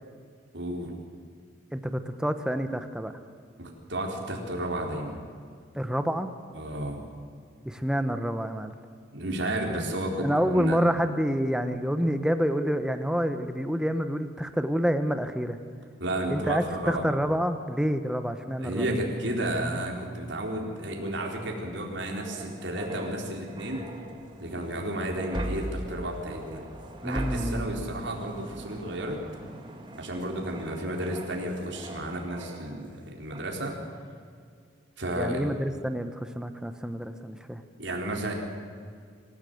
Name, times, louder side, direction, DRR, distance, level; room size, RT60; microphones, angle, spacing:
voice 1, 0.5-0.9 3.6-5.2 6.5-7.0 9.1-10.8 16.0-17.1 18.6-23.9 24.4-26.6 27.0-29.2 30.0-33.8 35.0-35.5 37.8-38.3, right 1 dB, 65° right, 1 dB, 4.0 m, -32 dB
voice 2, 1.7-3.1 5.7-6.3 7.6-8.7 10.2-15.6 16.3-18.9 27.0-27.6 35.2-37.6, equal, 5° right, 8 dB, 1.0 m, -28 dB
sound 1, 20.6-33.0 33.3-33.6, equal, 25° right, 2.1 m, -40 dB
25.5 x 15.5 x 7.9 m, 2.1 s
head